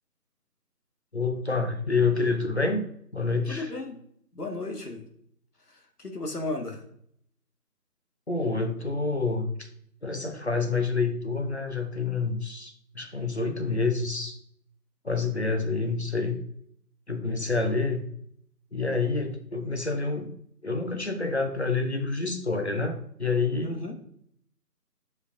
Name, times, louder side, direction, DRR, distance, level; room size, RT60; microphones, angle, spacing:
voice 1, 1.1-2.9 3.1-3.7 8.3-9.7 10.0-14.4 15.0-16.4 17.1-18.0 18.7-20.3 20.6-23.8, left 3 dB, 45° left, 6 dB, 1.0 m, -28 dB
voice 2, 3.5-4.0 4.3-5.1 5.7-6.8 23.6-23.9, left 2 dB, 70° left, 3 dB, 2.0 m, -34 dB
12.5 x 5.3 x 2.6 m, 0.67 s
figure-of-eight pair, 170°, 48 cm